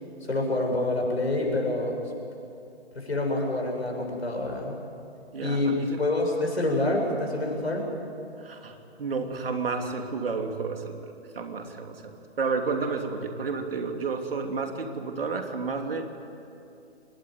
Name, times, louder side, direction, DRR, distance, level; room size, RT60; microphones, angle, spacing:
voice 1, 0.3-2.0 2.9-4.8 5.4-7.9, left 2 dB, 75° left, 0 dB, 7.8 m, -27 dB
voice 2, 5.3-6.1 8.4-16.0, right 4 dB, 60° right, 4 dB, 3.0 m, -31 dB
26.0 x 20.0 x 9.6 m, 2.6 s
figure-of-eight pair, 130°, 33 cm